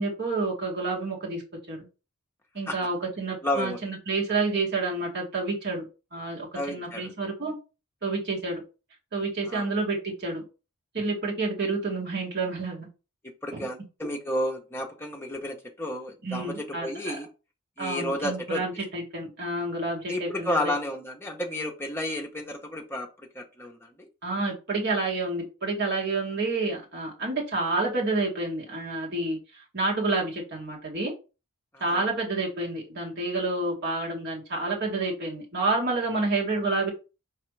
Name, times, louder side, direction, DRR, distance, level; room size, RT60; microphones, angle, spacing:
voice 1, 0.0-1.4 1.7-1.9 2.5-5.8 6.1-7.6 8.0-8.6 9.1-10.4 10.9-12.9 16.2-17.2 17.8-20.7 24.2-29.4 29.7-31.1 31.8-36.9, right 3 dB, 50° right, -2 dB, 1.8 m, -29 dB
voice 2, 3.4-3.8 6.5-7.1 9.5-9.7 13.4-17.3 17.8-18.6 20.1-24.1 31.7-32.0, left 1 dB, 10° left, 1 dB, 0.8 m, -32 dB
5.0 x 3.3 x 3.2 m, 0.31 s
head